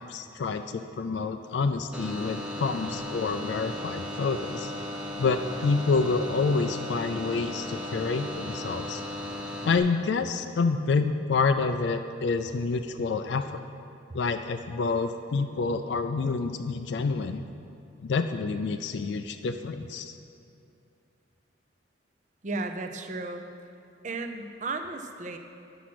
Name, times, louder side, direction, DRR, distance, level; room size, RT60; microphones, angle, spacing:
voice 1, 0.0-4.7 5.2-9.0 9.6-13.6 14.1-17.4 18.0-20.1, left 4 dB, 65° left, 8 dB, 0.3 m, -28 dB
sound 1, 1.9-9.8, left 1 dB, 5° right, 0.8 m, -36 dB
voice 2, 22.4-23.5 24.0-25.4, right 3 dB, 40° right, 6 dB, 0.6 m, -34 dB
9.9 x 6.1 x 6.0 m, 2.6 s
head